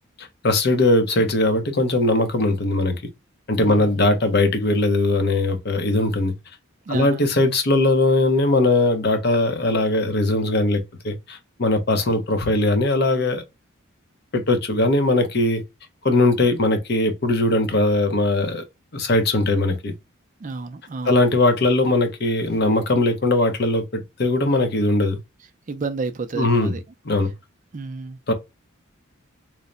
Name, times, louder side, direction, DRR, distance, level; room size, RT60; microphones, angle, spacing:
voice 1, 0.2-3.0 3.5-6.3 6.9-13.4 14.3-15.6 16.0-18.6 18.9-19.9 21.1-25.2 26.3-26.7 27.0-27.3 28.3-28.4, left 2 dB, 50° left, 0.7 m, -20 dB
voice 2, 3.6-4.1 6.9-7.2 20.4-21.2 25.7-26.8 27.7-28.2, right 4 dB, 35° right, 0.4 m, -31 dB
3.2 x 2.1 x 3.8 m
head